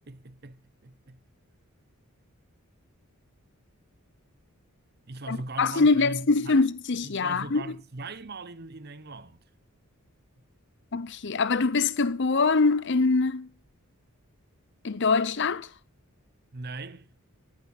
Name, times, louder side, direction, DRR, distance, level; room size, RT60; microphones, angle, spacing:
voice 1, 0.1-1.2 5.1-6.6 7.0-9.4 16.5-17.1, right 2 dB, 45° right, 0.9 m, -40 dB
voice 2, 5.3-7.8 10.9-13.5 14.8-15.7, left 4 dB, 55° left, 0.7 m, -24 dB
17.5 x 11.5 x 4.2 m
head